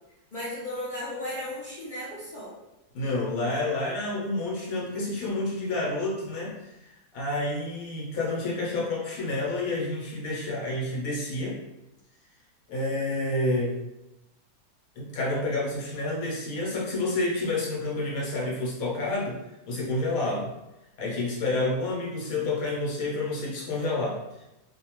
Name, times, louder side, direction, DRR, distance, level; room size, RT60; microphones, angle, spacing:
voice 1, 0.3-2.5, left 1 dB, 45° left, -8 dB, 0.6 m, -35 dB
voice 2, 2.9-6.8 7.1-11.6 12.7-13.8 15.0-19.4 19.7-20.5 21.0-24.4, left 2 dB, 70° left, -3 dB, 1.2 m, -29 dB
2.8 x 2.1 x 2.9 m, 0.93 s
omnidirectional pair, 1.6 m